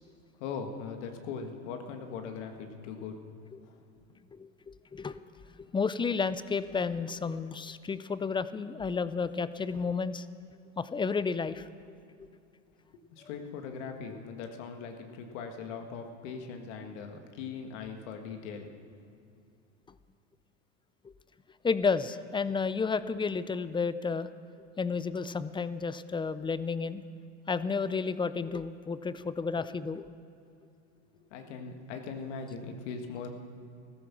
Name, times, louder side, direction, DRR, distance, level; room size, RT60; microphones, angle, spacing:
voice 1, 0.4-3.2 3.6-3.8 13.1-19.0 31.3-33.3, left 5 dB, 75° left, 5 dB, 1.8 m, -40 dB
voice 2, 4.3-10.3 10.8-11.7 12.2-12.3 21.0-21.1 21.6-24.3 24.8-27.0 27.5-30.1, left 5 dB, 15° left, 14 dB, 0.5 m, -32 dB
15.0 x 13.5 x 6.0 m, 2.6 s
supercardioid pair, 95°, 36 cm